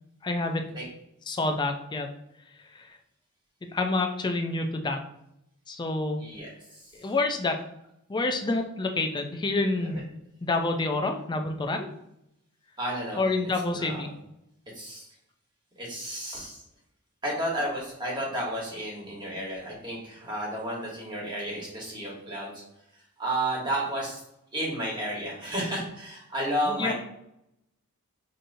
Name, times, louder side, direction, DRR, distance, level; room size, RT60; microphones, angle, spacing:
voice 1, 0.2-0.7 1.3-2.1 2.7-3.0 3.6-5.0 5.7-6.3 6.9-7.6 8.1-10.0 10.4-11.9 13.2-14.1 26.7-26.9, left 2 dB, 20° left, 5 dB, 0.4 m, -28 dB
voice 2, 6.2-6.9 9.8-10.0 12.8-13.3 13.7-14.1 14.7-15.1 15.8-16.6 17.2-22.6 22.9-24.2 24.5-26.9, right 1 dB, 20° right, -4 dB, 1.3 m, -32 dB
5.1 x 2.8 x 2.6 m, 0.81 s
head